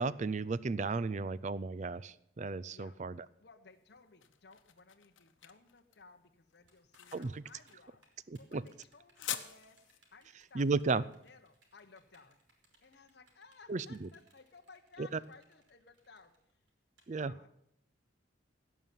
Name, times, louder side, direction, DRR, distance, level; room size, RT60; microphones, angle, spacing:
voice 1, 0.0-3.3 7.1-7.4 8.3-8.6 10.5-11.0 13.7-14.1 15.0-15.2 17.1-17.3, right 4 dB, 35° right, 19 dB, 0.4 m, -34 dB
voice 2, 3.4-8.0 8.4-9.8 10.1-10.7 11.2-12.4 12.8-16.6 17.2-17.5, left 4 dB, 55° left, 5 dB, 0.9 m, -59 dB
sound 1, 3.7-12.7, left 11 dB, 85° left, 1.0 m, -47 dB
Typing, 6.7-17.0, right 3 dB, 70° right, 3.9 m, -69 dB
16.5 x 5.7 x 9.1 m, 0.76 s
head